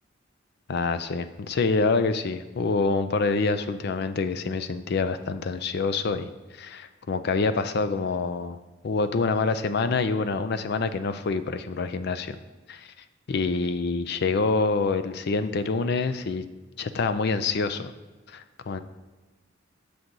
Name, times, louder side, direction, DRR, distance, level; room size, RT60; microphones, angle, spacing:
voice 1, 0.7-8.6 8.8-12.4 12.7-12.9 13.3-16.4 16.8-17.9 18.3-18.8, left 4 dB, 60° left, 11 dB, 0.4 m, -26 dB
6.8 x 6.1 x 3.8 m, 1.2 s
head